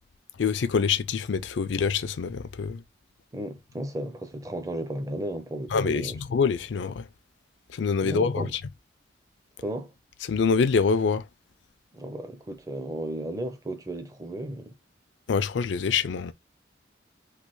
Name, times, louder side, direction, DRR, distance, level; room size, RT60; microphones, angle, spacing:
voice 1, 0.4-2.8 5.7-7.0 7.7-8.5 10.3-11.2 15.3-16.3, left 5 dB, 70° left, 0.4 m, -25 dB
voice 2, 3.3-6.2 8.0-8.5 9.6-9.9 11.9-14.8, right 1 dB, 20° right, 0.5 m, -34 dB
3.2 x 2.2 x 3.0 m
head